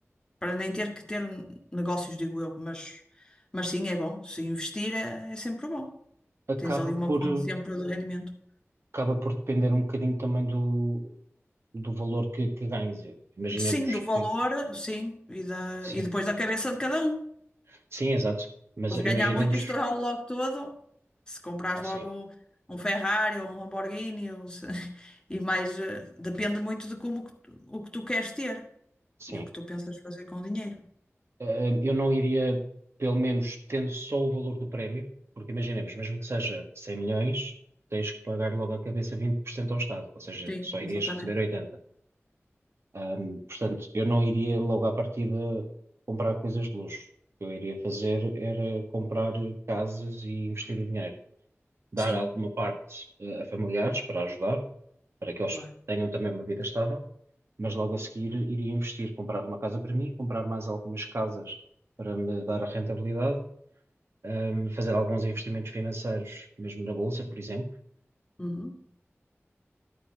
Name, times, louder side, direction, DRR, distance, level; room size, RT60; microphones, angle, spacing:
voice 1, 0.4-3.0 3.5-5.9 6.6-8.3 13.5-17.2 18.9-20.7 21.3-22.3 22.7-28.6 29.3-30.9 40.5-41.3 52.0-52.2 55.5-55.7 68.4-68.8, left 1 dB, 15° left, 1 dB, 1.8 m, -32 dB
voice 2, 6.5-7.5 8.9-11.1 11.7-14.2 15.8-16.1 17.7-18.5 18.8-19.7 21.8-22.0 29.2-29.5 31.4-32.6 33.0-35.0 35.4-37.5 37.9-41.6 42.9-45.7 46.1-47.1 47.4-51.1 51.9-54.6 55.2-55.6 55.9-57.0 57.6-61.6 62.0-63.4 64.2-67.7, right 1 dB, 60° right, 3 dB, 1.6 m, -30 dB
11.5 x 4.3 x 6.3 m, 0.68 s
wide cardioid pair, 55°, 5 cm